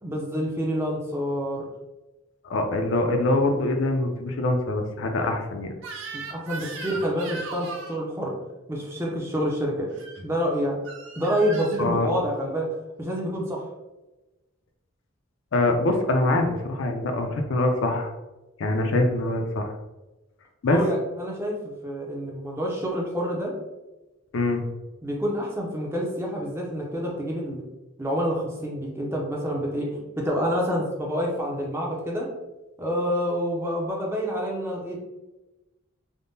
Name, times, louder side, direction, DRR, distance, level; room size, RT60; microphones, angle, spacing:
voice 1, 0.0-1.6 6.1-8.3 8.7-9.9 10.2-10.8 11.2-12.7 13.0-13.7 20.7-23.5 25.0-27.6 28.0-32.3 32.8-35.0, equal, 10° right, -2 dB, 0.4 m, -28 dB
voice 2, 2.4-5.7 11.8-12.1 15.5-18.1 18.6-19.7 20.6-20.8 24.3-24.6, left 2 dB, 65° left, 4 dB, 0.4 m, -24 dB
Crying sobbing / Screech, 5.8-8.0 9.9-10.2 10.9-11.8, right 3 dB, 65° right, 0.5 m, -38 dB
3.5 x 2.1 x 2.6 m, 1.0 s
head